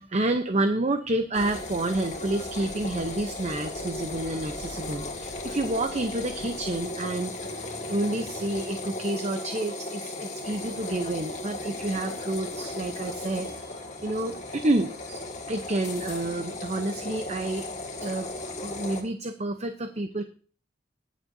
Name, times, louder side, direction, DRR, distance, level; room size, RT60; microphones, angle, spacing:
voice 1, 0.0-15.2 15.5-17.6 18.0-18.3 18.6-20.2, right 2 dB, 35° right, 7 dB, 0.8 m, -29 dB
sound 1, 1.3-19.0, left 2 dB, 40° left, 1.9 m, -36 dB
20.0 x 7.3 x 2.7 m, 0.40 s
head